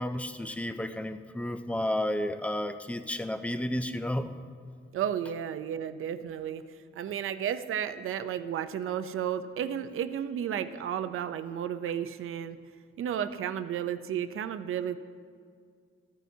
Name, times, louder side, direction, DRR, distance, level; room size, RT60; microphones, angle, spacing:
voice 1, 0.0-4.3, left 1 dB, 5° left, 9 dB, 0.4 m, -32 dB
voice 2, 4.9-12.6 13.0-15.0, right 9 dB, 85° right, 11 dB, 0.6 m, -33 dB
14.5 x 13.5 x 2.8 m, 2.1 s
wide cardioid pair, 160°, 21 cm